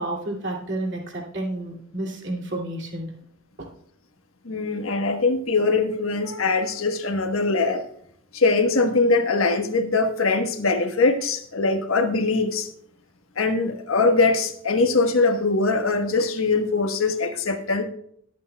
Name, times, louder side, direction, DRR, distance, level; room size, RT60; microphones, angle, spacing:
voice 1, 0.0-3.1 3.6-3.7, right 1 dB, 55° right, -1 dB, 2.5 m, -30 dB
voice 2, 4.4-7.9 8.3-12.7 13.4-17.8, left 3 dB, 80° left, 5 dB, 1.2 m, -22 dB
22.0 x 8.4 x 2.3 m, 0.69 s
head